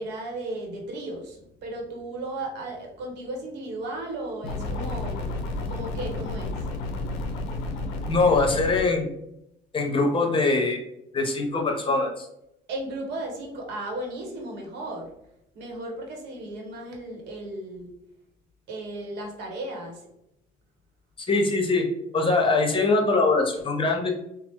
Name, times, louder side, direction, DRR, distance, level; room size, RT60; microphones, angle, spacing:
voice 1, 0.0-5.2 5.7-6.6 12.7-15.1 15.5-17.9 18.7-20.1, right 1 dB, 75° right, 1 dB, 0.9 m, -35 dB
sound 1, 4.4-8.8, left 2 dB, 85° left, 0.5 m, -31 dB
voice 2, 8.1-9.1 9.7-10.8 11.1-12.3 21.2-21.8 22.1-24.1, left 3 dB, 30° left, 2 dB, 0.7 m, -22 dB
3.0 x 2.0 x 2.9 m, 0.80 s
supercardioid pair, 85°, 18 cm